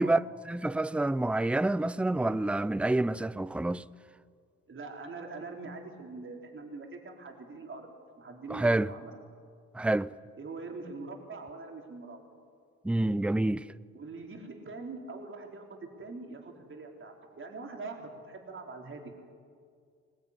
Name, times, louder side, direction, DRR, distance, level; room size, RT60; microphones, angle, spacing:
voice 1, 0.0-3.8 8.5-8.9 9.7-10.1 12.8-13.7, right 2 dB, 5° right, 0.5 m, -28 dB
voice 2, 4.7-7.9 8.2-9.2 10.4-12.2 13.9-19.1, right 3 dB, 40° right, 4.6 m, -43 dB
20.5 x 20.0 x 10.0 m
cardioid pair, 90°, 30 cm